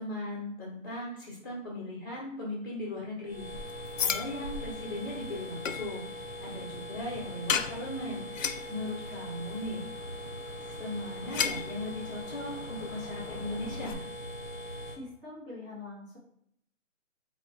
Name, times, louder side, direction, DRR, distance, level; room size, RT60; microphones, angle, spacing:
voice 1, 0.0-3.4 4.0-6.1 6.4-8.3 8.7-9.8 10.6-14.0, left 1 dB, 15° left, -5 dB, 1.2 m, -38 dB
sound 1, 3.2-15.0, equal, 45° right, 1.3 m, -41 dB
sound 2, 3.5-13.9, left 7 dB, 75° left, 0.5 m, -38 dB
voice 2, 14.6-16.2, left 3 dB, 15° right, -13 dB, 1.1 m, -45 dB
4.6 x 2.4 x 3.3 m, 0.69 s
hypercardioid pair, 180°, 40 cm